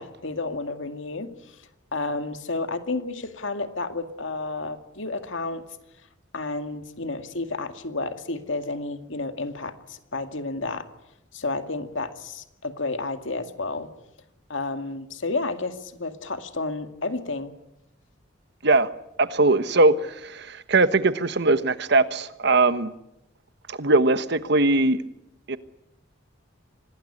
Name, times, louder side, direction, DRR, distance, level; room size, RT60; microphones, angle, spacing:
voice 1, 0.0-5.8 6.3-10.9 11.3-13.9 14.5-17.5, left 3 dB, 70° left, 8 dB, 2.2 m, -31 dB
voice 2, 19.2-22.9 23.7-25.0 25.5-25.6, right 2 dB, 60° right, 12 dB, 1.3 m, -20 dB
25.5 x 19.0 x 9.9 m, 0.88 s
head